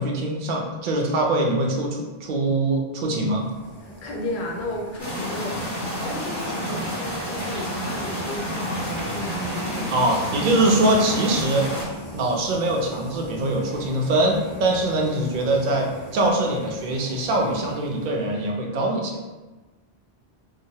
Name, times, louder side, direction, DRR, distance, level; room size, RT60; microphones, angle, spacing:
voice 1, 0.0-3.5 9.9-11.7 12.1-19.2, right 1 dB, 60° right, 0 dB, 0.6 m, -23 dB
sound 1, 3.2-18.6, equal, 15° right, 1.2 m, -41 dB
voice 2, 3.8-9.9, left 1 dB, 60° left, -1 dB, 0.7 m, -34 dB
sound 2, 5.0-11.8, equal, 20° left, 0.9 m, -30 dB
sound 3, 7.5-10.4, left 1 dB, 90° left, 0.9 m, -42 dB
2.9 x 2.1 x 2.7 m, 1.2 s
omnidirectional pair, 1.1 m